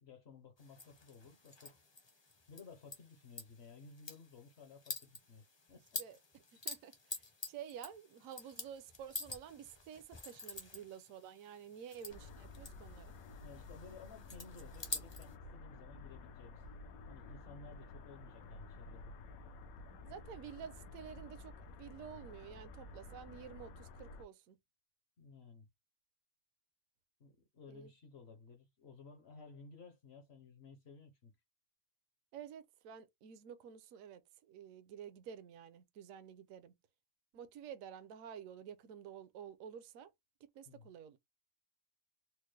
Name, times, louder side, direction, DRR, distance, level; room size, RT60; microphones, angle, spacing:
voice 1, 0.0-1.7 2.5-6.0 13.4-16.6 17.1-19.1 25.2-25.7 27.2-31.3 40.7-40.9, left 4 dB, 55° left, 0.9 m, -56 dB
sound 1, 0.6-15.3, left 3 dB, 30° left, 0.5 m, -49 dB
voice 2, 6.6-13.1 20.0-24.6 27.7-27.9 32.3-36.7 37.3-40.1 40.5-41.2, right 8 dB, 70° right, 1.0 m, -51 dB
sound 2, 12.1-24.2, left 3 dB, 80° left, 1.1 m, -52 dB
4.3 x 2.1 x 3.2 m
omnidirectional pair, 1.5 m